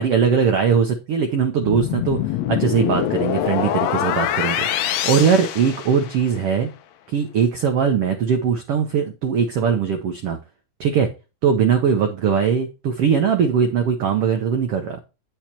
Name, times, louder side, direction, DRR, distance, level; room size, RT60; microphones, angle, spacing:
voice 1, 0.0-2.2 2.5-6.7 7.1-10.4 10.8-11.1 11.4-15.0, right 6 dB, 75° right, 5 dB, 1.4 m, -20 dB
sound 1, 1.6-6.4, left 11 dB, 75° left, 1.6 m, -24 dB
8.7 x 5.8 x 4.4 m, 0.29 s
omnidirectional pair, 3.9 m